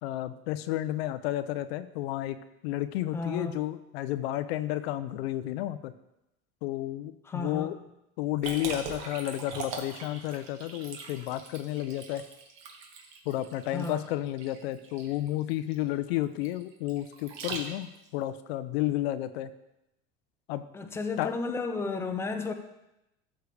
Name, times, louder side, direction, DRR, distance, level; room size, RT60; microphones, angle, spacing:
voice 1, 0.0-2.4 2.6-5.9 6.6-7.8 8.2-12.2 13.3-19.5 20.5-20.7 21.2-21.3, left 14 dB, 80° left, 12 dB, 0.7 m, -32 dB
voice 2, 3.1-3.6 7.2-7.7 13.7-14.0 20.7-22.5, left 3 dB, 10° left, 5 dB, 0.6 m, -33 dB
Liquid, 8.4-18.1, right 5 dB, 60° right, 1.7 m, -41 dB
13.0 x 6.7 x 3.4 m, 0.90 s
supercardioid pair, 145°, 30 cm